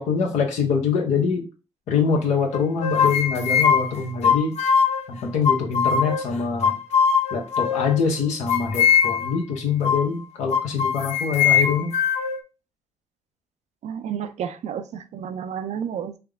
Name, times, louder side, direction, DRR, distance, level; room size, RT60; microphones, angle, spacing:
voice 1, 0.0-1.4 1.9-4.5 5.1-6.8 7.3-11.9, left 6 dB, 90° left, 1 dB, 0.9 m, -24 dB
sound 1, 2.5-5.0 5.4-6.3 6.6-8.0 8.5-9.4 9.8-10.1 10.5-12.4, left 7 dB, 70° left, 0.4 m, -21 dB
voice 2, 13.8-16.2, right 8 dB, 75° right, 10 dB, 0.4 m, -31 dB
3.5 x 2.0 x 3.4 m, 0.32 s
cardioid pair, 60°, 12 cm